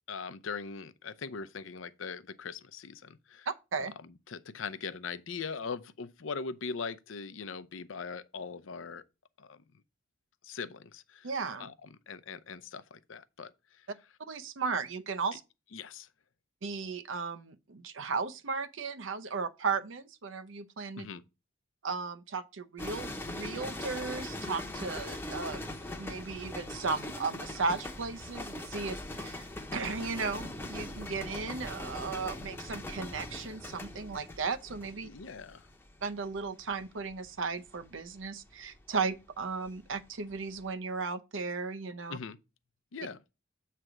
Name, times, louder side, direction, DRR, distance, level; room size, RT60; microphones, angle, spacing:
voice 1, 0.1-3.5 3.8-9.0 9.4-9.6 10.4-11.3 11.6-13.5 13.8-13.9 15.7-16.1 21.0-21.2 35.0-35.7 42.1-42.4 42.9-43.2, left 5 dB, 75° left, 0.6 m, -41 dB
voice 2, 3.5-3.9 11.2-11.7 14.3-15.4 16.6-21.1 21.8-25.6 26.0-35.1 36.0-42.2, right 4 dB, 75° right, 0.7 m, -35 dB
sound 1, 22.8-40.0 40.3-40.7, left 1 dB, 10° left, 0.8 m, -41 dB
7.7 x 3.3 x 6.0 m
head